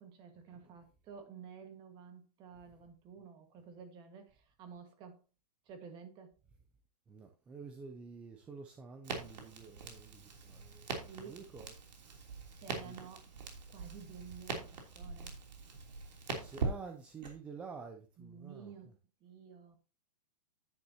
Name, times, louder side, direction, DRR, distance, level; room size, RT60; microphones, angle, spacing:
voice 1, 0.0-5.2 5.7-6.4 11.0-11.4 12.5-13.3 13.7-15.4 18.2-18.9 19.2-19.8, right 6 dB, 20° right, 1.6 m, -52 dB
voice 2, 7.1-11.8 12.0-12.2 12.7-13.0 16.2-18.7, right 5 dB, 5° right, 0.3 m, -50 dB
Crackle, 9.0-17.3, right 4 dB, 85° right, 3.1 m, -42 dB
10.0 x 9.4 x 2.8 m
hypercardioid pair, 165°, 21 cm